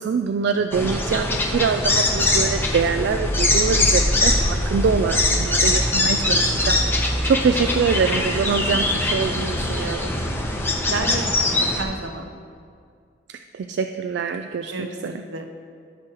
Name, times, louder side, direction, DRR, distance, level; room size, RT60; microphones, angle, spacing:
voice 1, 0.0-10.2 13.3-15.2, right 5 dB, 65° right, 7 dB, 0.3 m, -24 dB
sound 1, 0.7-11.8, left 1 dB, 10° left, 0.8 m, -22 dB
voice 2, 6.2-6.7 10.9-12.3 14.7-15.5, right 2 dB, 80° right, 5 dB, 0.8 m, -31 dB
15.0 x 6.2 x 3.0 m, 2.3 s
head